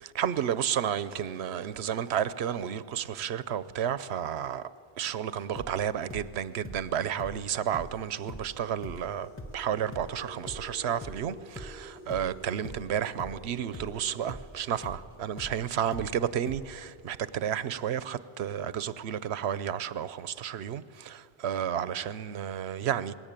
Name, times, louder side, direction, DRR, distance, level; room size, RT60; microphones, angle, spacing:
voice 1, 0.0-4.7 5.0-23.1, right 9 dB, 85° right, 1.0 m, -32 dB
sound 1, 5.4-12.3 12.6-16.9, left 1 dB, 15° left, 0.7 m, -44 dB
sound 2, 5.9-15.4, right 1 dB, 50° left, 3.1 m, -51 dB
21.0 x 17.5 x 8.9 m
omnidirectional pair, 1.1 m